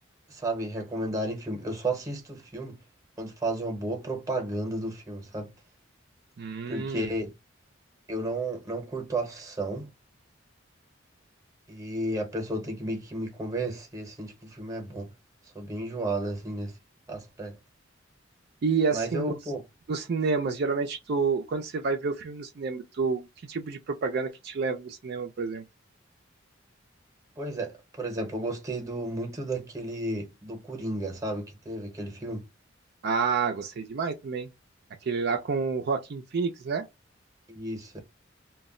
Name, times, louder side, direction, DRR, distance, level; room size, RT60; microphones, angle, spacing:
voice 1, 0.3-2.8 3.2-5.5 6.7-7.3 8.1-9.9 11.7-15.1 15.5-16.8 17.1-17.6 18.9-19.6 27.4-32.5 37.5-38.0, right 1 dB, 15° right, 0.8 m, -33 dB
voice 2, 6.4-7.1 18.6-19.4 19.9-25.6 33.0-34.5 35.0-36.9, right 4 dB, 55° right, 0.4 m, -29 dB
2.2 x 2.0 x 3.6 m
head